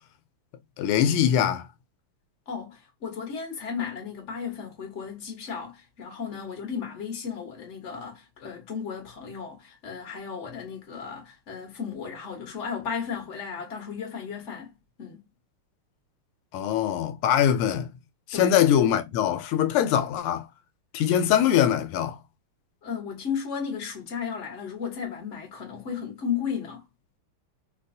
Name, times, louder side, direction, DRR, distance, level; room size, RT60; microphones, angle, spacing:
voice 1, 0.8-1.7 16.5-17.9 18.3-20.5 20.9-22.2, left 10 dB, 85° left, 1.5 m, -22 dB
voice 2, 2.5-15.3 18.3-18.5 22.8-26.8, left 6 dB, 40° left, 1.2 m, -34 dB
4.0 x 2.3 x 2.6 m
omnidirectional pair, 2.4 m